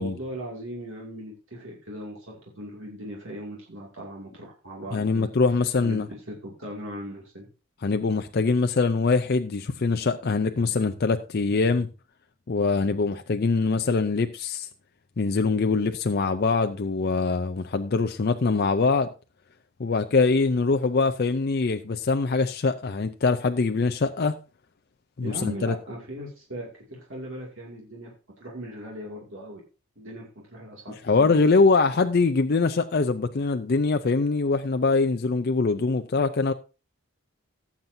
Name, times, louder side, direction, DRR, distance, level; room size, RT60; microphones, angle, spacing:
voice 1, 0.0-5.3 5.8-7.5 25.2-29.6 30.0-31.4, equal, 60° right, 2.4 m, -38 dB
voice 2, 4.9-6.1 7.8-11.9 12.5-14.7 15.2-19.1 19.8-24.4 25.2-25.8 31.0-36.5, left 4 dB, 45° left, 0.5 m, -23 dB
17.5 x 7.4 x 2.7 m
head